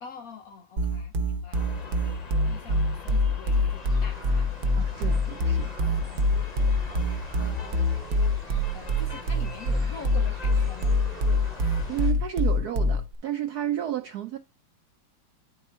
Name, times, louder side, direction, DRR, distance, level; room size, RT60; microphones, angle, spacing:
voice 1, 0.0-4.7 5.8-6.3 6.8-7.1 7.4-7.8 8.7-11.0, left 6 dB, 75° left, 0.8 m, -45 dB
sound 1, 0.8-13.1, left 1 dB, 55° right, 1.2 m, -24 dB
sound 2, 1.5-12.1, left 3 dB, 40° left, 0.6 m, -43 dB
sound 3, 3.8-12.1, right 2 dB, 25° right, 1.2 m, -46 dB
voice 2, 4.8-5.8 11.9-14.4, right 11 dB, 75° right, 0.9 m, -32 dB
9.8 x 3.8 x 4.3 m
omnidirectional pair, 2.3 m